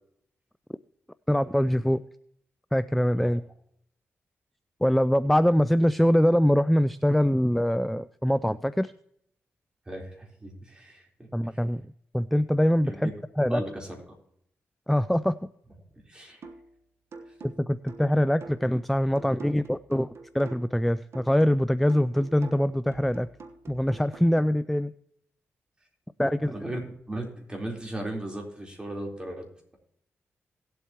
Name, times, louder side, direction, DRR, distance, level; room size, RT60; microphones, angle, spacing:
voice 1, 1.3-2.0 2.7-3.4 4.8-8.9 11.3-11.8 12.1-13.1 13.4-13.6 14.9-15.4 17.4-23.3 23.7-24.9 26.2-26.5, equal, ahead, 14 dB, 0.4 m, -23 dB
voice 2, 9.9-11.3 12.9-13.1 13.5-14.0 16.1-16.4 26.5-26.8 27.1-29.5, right 1 dB, 20° right, 0 dB, 3.8 m, -36 dB
sound 1, 16.4-16.7 17.1-20.8 21.1-24.4, right 3 dB, 70° right, 1.2 m, -46 dB
18.0 x 8.0 x 3.0 m, 0.70 s
cardioid pair, 75°, 5 cm